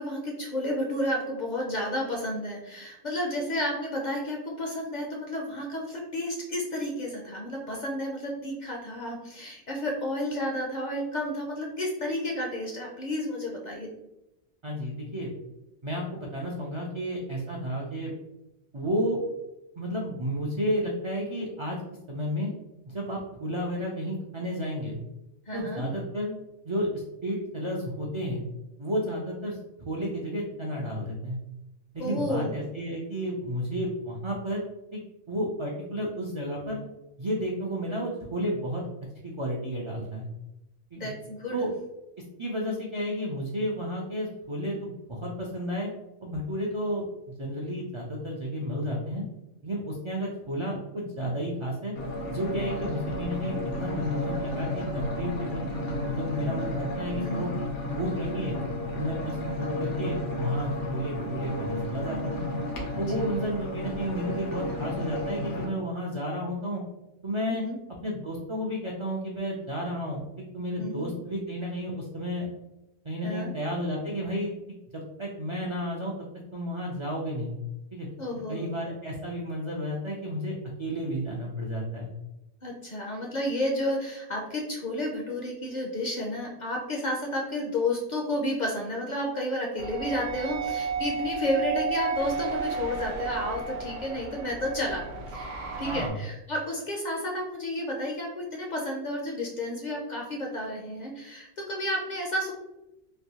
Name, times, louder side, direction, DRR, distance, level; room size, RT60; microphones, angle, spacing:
voice 1, 0.0-13.9 25.5-25.8 32.0-32.6 40.9-41.6 57.1-57.5 62.9-63.3 67.5-67.8 70.8-71.1 73.2-73.5 78.2-78.7 82.6-95.0 95.3-102.5, left 1 dB, 50° left, 0 dB, 0.5 m, -31 dB
voice 2, 14.6-15.3 15.8-18.1 18.7-19.2 19.8-21.8 22.1-22.5 22.9-25.0 25.5-26.3 26.6-28.4 28.8-29.6 29.8-31.4 31.9-34.6 34.9-35.0 35.3-36.8 37.2-38.8 39.2-40.3 40.9-41.1 41.5-41.7 42.4-45.9 46.2-49.2 49.6-51.9 52.3-55.7 56.0-57.5 57.9-58.6 58.9-62.4 63.0-66.8 67.2-67.6 68.0-72.5 73.0-74.5 74.9-76.1 76.5-77.6 77.9-78.1 78.5-82.1 95.8-96.1, equal, 50° right, -3 dB, 0.3 m, -32 dB
sound 1, 51.9-65.7, left 1 dB, 85° left, 1.1 m, -32 dB
sound 2, 89.8-96.1, right 5 dB, 85° right, 0.9 m, -33 dB
3.2 x 2.6 x 2.8 m, 0.92 s
omnidirectional pair, 1.2 m